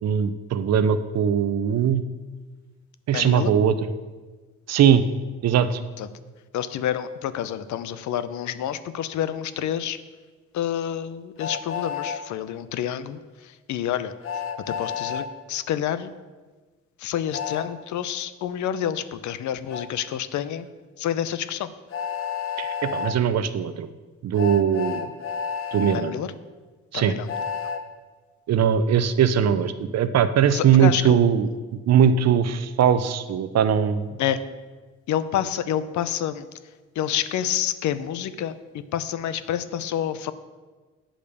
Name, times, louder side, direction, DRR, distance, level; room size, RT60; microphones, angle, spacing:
voice 1, 0.0-2.0 3.1-3.9 4.7-5.1 5.4-5.8 22.6-23.9 24.2-25.1 25.7-26.1 26.9-27.1 28.5-31.5 31.9-34.2, right 8 dB, 60° right, 12 dB, 0.6 m, -20 dB
voice 2, 3.1-3.5 6.0-6.1 6.5-10.0 10.5-16.1 17.0-20.7 21.0-21.7 25.9-26.3 26.9-27.3 30.5-31.2 34.2-34.4 35.1-36.5 37.0-40.3, left 10 dB, 70° left, 14 dB, 0.6 m, -28 dB
Train, 11.4-12.2 14.2-15.3 17.3-17.7 19.7-19.9 21.9-23.1 24.4-26.0 27.3-27.8, left 6 dB, 45° left, 0.9 m, -30 dB
8.7 x 5.1 x 6.9 m, 1.3 s
cardioid pair, 90°, 30 cm